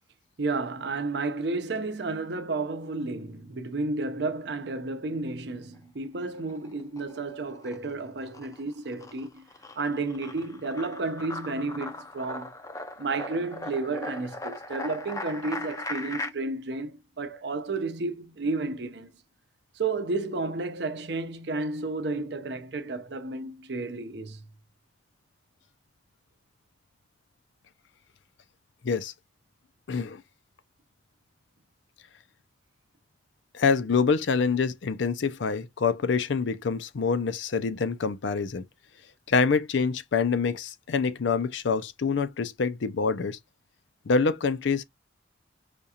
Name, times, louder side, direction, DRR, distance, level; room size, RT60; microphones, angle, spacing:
voice 1, 0.4-9.5 9.8-12.6 13.0-19.1 19.7-24.5, right 3 dB, 65° right, 0.6 m, -32 dB
sound 1, 6.3-7.2 7.5-16.3, left 2 dB, 15° left, 0.4 m, -39 dB
voice 2, 29.9-30.2 33.5-38.6 39.3-43.4 44.1-44.8, left 5 dB, 75° left, 0.5 m, -26 dB
5.1 x 2.4 x 2.8 m
head